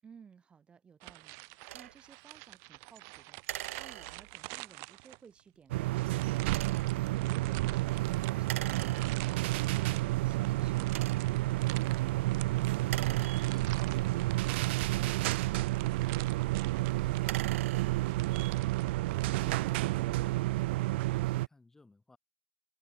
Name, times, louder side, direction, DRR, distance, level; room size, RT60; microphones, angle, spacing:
voice 1, 0.0-3.4 3.8-6.9 7.3-8.8 9.2-12.2, right 6 dB, 15° right, 7.9 m, -57 dB
sound 1, 1.0-5.4 6.1-19.7, right 35 dB, 40° right, 3.9 m, -48 dB
sound 2, 1.7-1.9 3.4-4.5 6.4-7.0 8.4-9.4 10.1-10.2 10.8-11.5 12.8-14.0 14.9-15.8 17.1-18.2, right 14 dB, 75° right, 2.2 m, -42 dB
sound 3, 5.7-21.5, right 19 dB, 55° right, 1.1 m, -30 dB
voice 2, 13.0-18.8 19.2-22.2, left 3 dB, 5° left, 7.8 m, -60 dB
supercardioid pair, 165°, 7 cm